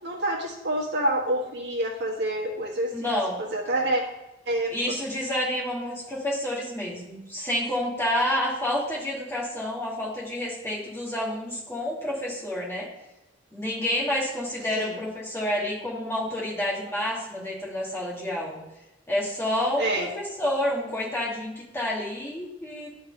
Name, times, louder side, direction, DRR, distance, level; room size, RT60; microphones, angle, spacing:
voice 1, 0.0-4.0 4.5-4.7 14.8-15.0 19.8-20.1, right 1 dB, 55° right, 0 dB, 1.4 m, -27 dB
voice 2, 2.9-3.4 4.7-12.9 13.5-18.6 19.1-19.9 20.2-22.9, left 1 dB, 15° left, -6 dB, 2.3 m, -29 dB
11.5 x 3.9 x 4.1 m, 0.94 s
head